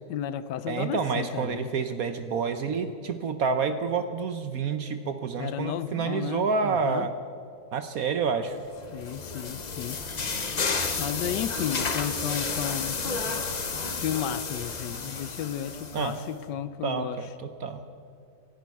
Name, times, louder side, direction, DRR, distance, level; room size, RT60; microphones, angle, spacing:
voice 1, 0.1-1.7 5.4-7.1 8.9-10.0 11.0-13.0 13.9-17.3, left 10 dB, 75° left, 14 dB, 1.1 m, -33 dB
voice 2, 0.7-7.1 7.7-8.6 15.9-16.1 16.8-17.8, right 5 dB, 65° right, 9 dB, 0.9 m, -28 dB
sound 1, 8.7-16.2, left 4 dB, 45° left, 0.5 m, -31 dB
25.0 x 10.5 x 4.6 m, 2.5 s
omnidirectional pair, 2.0 m